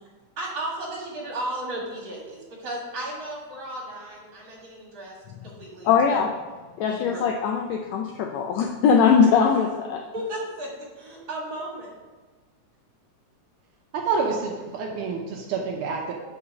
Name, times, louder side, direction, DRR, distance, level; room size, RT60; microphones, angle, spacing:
voice 1, 0.4-5.1 5.4-6.2 6.9-7.4 10.1-11.9, right 1 dB, 45° right, -3 dB, 2.2 m, -34 dB
voice 2, 5.8-6.3 6.8-10.0, left 6 dB, 90° left, 2 dB, 1.5 m, -21 dB
voice 3, 13.9-16.1, right 5 dB, 75° right, 0 dB, 2.2 m, -28 dB
6.0 x 5.5 x 6.2 m, 1.3 s
omnidirectional pair, 3.7 m